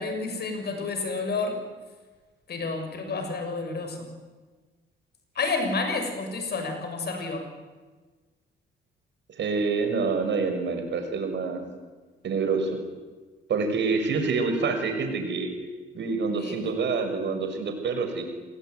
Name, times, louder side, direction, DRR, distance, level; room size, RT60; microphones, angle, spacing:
voice 1, 0.0-1.6 2.5-4.1 5.3-7.4 16.4-16.6, left 3 dB, 55° left, 5 dB, 6.9 m, -30 dB
voice 2, 9.4-11.6 12.2-12.8 13.5-15.5 15.9-18.2, right 4 dB, 65° right, 5 dB, 6.5 m, -27 dB
28.0 x 20.5 x 9.6 m, 1.4 s
cardioid pair, 90°, 20 cm